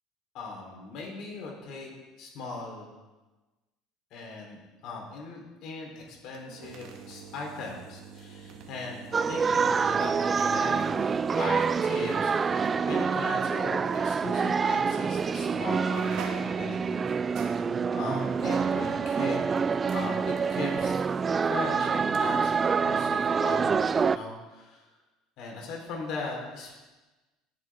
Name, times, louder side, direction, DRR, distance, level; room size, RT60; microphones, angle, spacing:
voice 1, 0.3-1.9 2.2-2.9 4.1-9.0 9.3-10.9 11.3-17.0 17.9-21.0 21.4-22.5 22.8-24.9 25.4-26.8, left 3 dB, 65° left, -1 dB, 3.9 m, -39 dB
sound 1, 6.2-14.0 14.3-14.5 15.3-15.4 15.7-22.2 22.5-22.6, right 5 dB, 65° right, 1.7 m, -46 dB
sound 2, 9.1-24.2, right 5 dB, 30° right, 0.3 m, -26 dB
18.0 x 7.6 x 3.7 m, 1.2 s
supercardioid pair, 105°, 0 cm